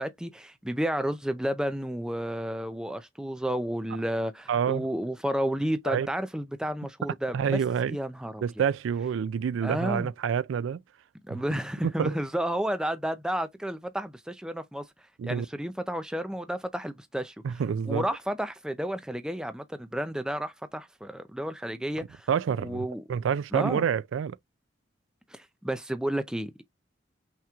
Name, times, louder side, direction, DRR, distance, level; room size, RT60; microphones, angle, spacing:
voice 1, 0.0-7.6 7.9-8.4 9.6-10.1 11.3-14.8 15.2-22.3 22.6-23.0 23.5-23.8 25.3-26.6, equal, 5° right, 0.4 m, -31 dB
voice 2, 4.5-4.9 5.9-6.1 7.3-8.0 8.4-10.8 11.8-12.2 15.2-15.5 17.4-18.1 22.0-24.4, right 7 dB, 80° right, 0.3 m, -28 dB
5.8 x 3.0 x 2.3 m
head